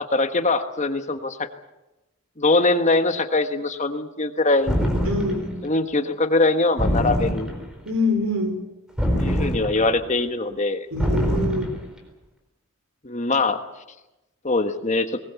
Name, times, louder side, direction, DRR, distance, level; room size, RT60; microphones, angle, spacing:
voice 1, 0.0-1.5 2.4-4.8 5.6-7.5 9.2-10.9 13.0-13.6 14.4-15.2, left 2 dB, 35° left, 8 dB, 1.3 m, -22 dB
sound 1, 4.7-5.5 6.8-7.8 9.0-10.0 11.0-11.9, equal, 5° right, 4.0 m, -24 dB
voice 2, 5.0-5.5 7.9-8.6 10.9-11.7, left 2 dB, 80° right, 7 dB, 4.8 m, -24 dB
22.0 x 20.0 x 8.3 m, 1.0 s
head